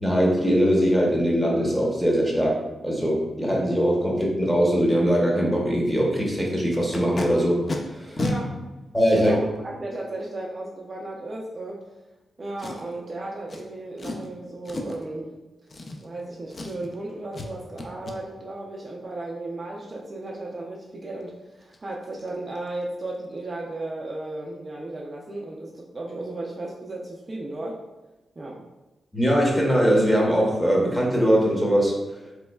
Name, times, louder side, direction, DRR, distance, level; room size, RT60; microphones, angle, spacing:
voice 1, 0.0-7.6 7.9-8.1 8.9-9.4 29.1-31.9, equal, 5° left, -3 dB, 0.8 m, -21 dB
Packing tape duct tape, 6.7-7.3 7.7-7.8 8.2-8.4 9.1-9.2 12.6-13.0 13.5-13.6 14.0-14.3 14.7-15.0 15.7-16.2 16.5-17.0 17.3-17.5 17.8-18.2 21.2-21.3 21.6-21.8 22.1-22.3 22.6-22.8 23.1-23.2, left 2 dB, 40° left, 0.4 m, -32 dB
voice 2, 8.2-8.6 9.1-11.9 12.4-15.4 16.0-27.8 28.4-28.7, right 2 dB, 35° right, -3 dB, 0.4 m, -35 dB
3.4 x 3.0 x 2.2 m, 1.1 s
wide cardioid pair, 110°, 0 cm